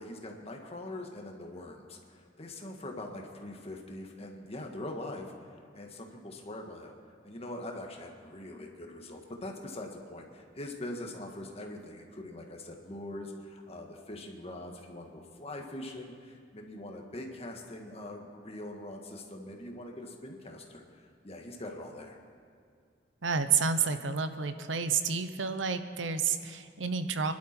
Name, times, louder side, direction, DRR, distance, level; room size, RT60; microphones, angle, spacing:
voice 1, 0.0-7.0 7.2-22.2, left 1 dB, 35° left, 2 dB, 1.7 m, -43 dB
voice 2, 23.2-27.3, right 5 dB, 80° right, 9 dB, 0.9 m, -30 dB
25.5 x 11.5 x 4.5 m, 2.3 s
head